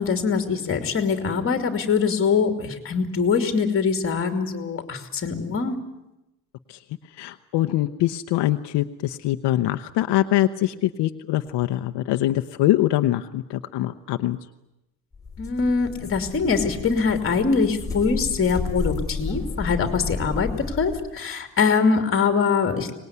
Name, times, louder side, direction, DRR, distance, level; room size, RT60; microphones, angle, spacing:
voice 1, 0.0-5.8 15.4-22.9, left 5 dB, 30° left, 7 dB, 2.8 m, -23 dB
voice 2, 7.2-14.4, left 14 dB, 75° left, 7 dB, 0.9 m, -23 dB
sound 1, 15.1-21.1, left 4 dB, 10° left, 3.3 m, -32 dB
24.5 x 20.0 x 9.6 m, 0.94 s
cardioid pair, 155°, 41 cm